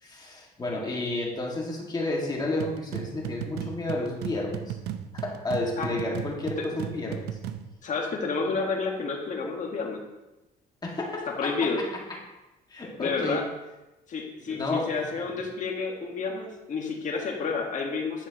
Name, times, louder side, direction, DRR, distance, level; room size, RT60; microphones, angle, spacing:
voice 1, 0.0-4.8 5.1-7.3 10.8-11.8 12.7-13.4 14.5-15.0, left 2 dB, 25° left, -2 dB, 2.1 m, -31 dB
sound 1, 2.6-7.7, right 10 dB, 75° right, 0.6 m, -36 dB
voice 2, 6.2-6.7 7.8-10.0 11.3-11.8 13.0-13.4 14.1-18.3, left 4 dB, 50° left, 0 dB, 1.7 m, -30 dB
10.5 x 5.4 x 3.0 m, 1.0 s
cardioid pair, 110°, 17 cm